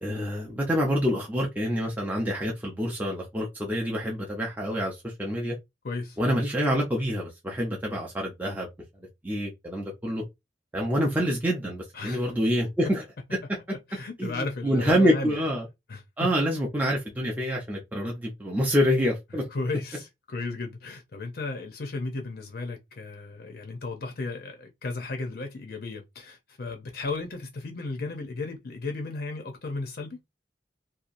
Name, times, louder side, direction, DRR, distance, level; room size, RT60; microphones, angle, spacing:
voice 1, 0.0-5.6 6.2-8.7 9.2-10.2 10.7-13.0 14.2-15.7 16.2-19.5, equal, 10° right, 0.5 m, -27 dB
voice 2, 5.8-6.2 11.9-12.3 13.9-15.4 15.9-16.3 19.5-30.2, left 3 dB, 55° left, 0.6 m, -35 dB
2.8 x 2.3 x 2.5 m
head